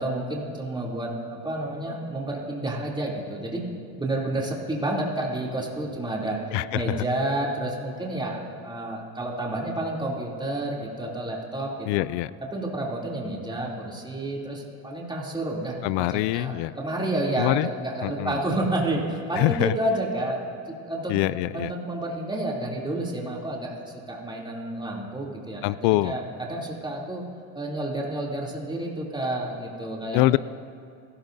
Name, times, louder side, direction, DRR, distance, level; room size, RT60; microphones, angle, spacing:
voice 1, 0.0-3.6 4.0-6.4 6.7-12.1 12.5-20.4 20.8-21.1 21.5-27.2 27.5-30.2, right 1 dB, 10° right, -4 dB, 2.9 m, -30 dB
voice 2, 6.5-7.0 11.9-12.3 15.8-16.7 17.4-17.7 18.0-18.4 19.4-19.8 21.1-21.7 25.6-26.2 30.1-30.4, left 18 dB, 65° left, 18 dB, 0.5 m, -24 dB
27.0 x 13.0 x 2.7 m, 2.4 s
supercardioid pair, 100°, 43 cm